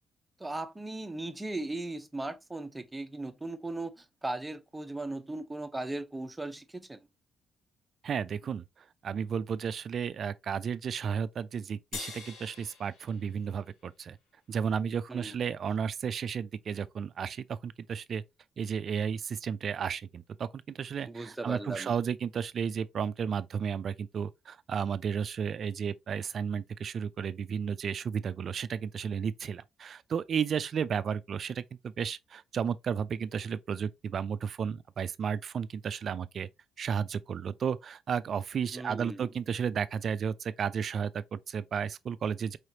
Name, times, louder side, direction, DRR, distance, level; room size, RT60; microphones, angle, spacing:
voice 1, 0.4-7.1 15.1-15.3 21.1-21.9 38.7-39.3, right 2 dB, 15° right, 0.7 m, -37 dB
voice 2, 8.0-8.7 9.0-14.2 14.5-18.2 18.6-36.5 36.8-42.6, right 7 dB, 55° right, 0.4 m, -33 dB
sound 1, 11.9-14.5, left 5 dB, 85° left, 1.2 m, -45 dB
4.9 x 3.2 x 2.7 m
cardioid pair, 90°, 0 cm